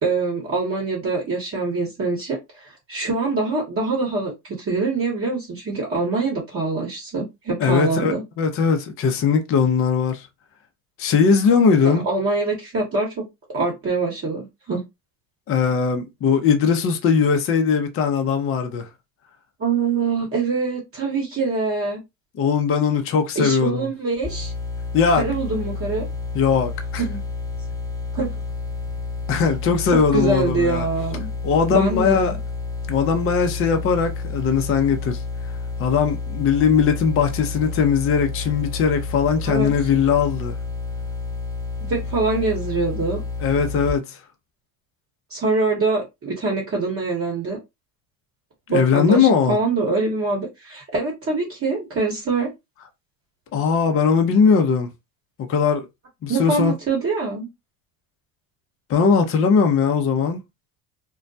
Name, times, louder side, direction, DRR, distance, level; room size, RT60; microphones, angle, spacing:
voice 1, 0.0-8.2 11.8-13.2 13.5-14.8 19.6-22.0 23.3-24.5 25.2-26.1 27.0-27.2 28.1-28.3 29.9-31.3 31.7-32.4 39.4-39.7 41.8-43.2 45.3-47.6 48.7-52.5 56.3-57.5, right 3 dB, 30° right, 1.1 m, -24 dB
voice 2, 7.6-10.3 11.0-12.0 15.5-18.9 22.4-23.9 24.9-25.2 26.3-27.0 29.3-30.9 31.4-32.3 32.9-35.2 35.8-40.5 43.4-44.2 48.7-49.6 53.5-54.9 55.4-55.9 56.2-56.7 58.9-60.4, left 6 dB, 30° left, 0.6 m, -19 dB
sound 1, 24.2-43.9, left 4 dB, 10° left, 0.9 m, -30 dB
2.3 x 2.1 x 2.6 m
hypercardioid pair, 85°, 42 cm